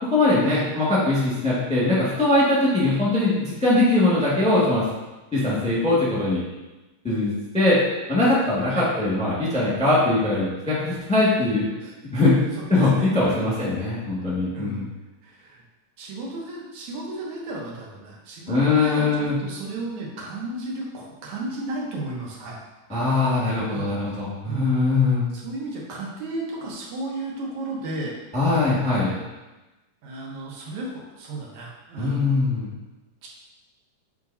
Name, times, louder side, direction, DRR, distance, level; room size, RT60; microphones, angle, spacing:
voice 1, 0.0-4.8 5.3-6.4 7.0-7.8 8.1-11.7 12.1-12.4 12.7-14.9 18.5-19.3 22.9-25.2 28.3-29.1 32.0-32.7, left 2 dB, 5° left, -8 dB, 1.1 m, -21 dB
voice 2, 12.9-13.5 14.5-14.9 15.2-15.6 16.0-22.6 23.7-23.9 24.5-25.0 25.3-28.1 30.0-32.4 33.2-33.3, right 2 dB, 80° right, -3 dB, 2.5 m, -34 dB
8.3 x 4.8 x 2.7 m, 1.1 s
omnidirectional pair, 3.3 m